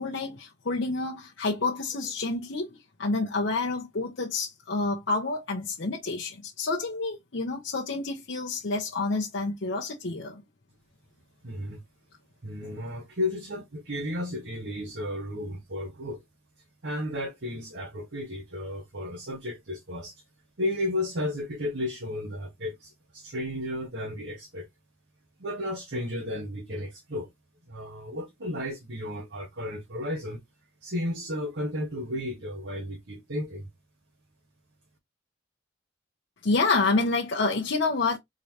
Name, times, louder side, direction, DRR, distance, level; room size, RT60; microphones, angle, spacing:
voice 1, 0.0-10.4 12.6-12.8 36.4-38.2, left 3 dB, 65° left, 0.8 m, -28 dB
voice 2, 11.4-11.8 12.4-16.2 16.8-20.2 20.6-24.7 25.4-27.3 27.7-30.4 30.8-33.7, left 1 dB, 60° right, 1.0 m, -33 dB
3.8 x 3.2 x 2.7 m
head